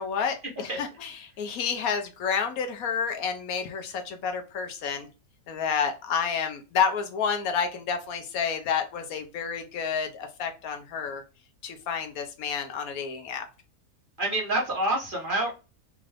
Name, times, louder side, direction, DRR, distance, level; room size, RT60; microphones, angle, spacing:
voice 1, 0.0-5.1 5.5-11.2 11.6-13.5, left 6 dB, 75° left, 5 dB, 1.1 m, -30 dB
voice 2, 14.2-15.5, right 1 dB, 40° right, -2 dB, 1.1 m, -27 dB
3.6 x 2.4 x 3.2 m, 0.31 s
omnidirectional pair, 1.6 m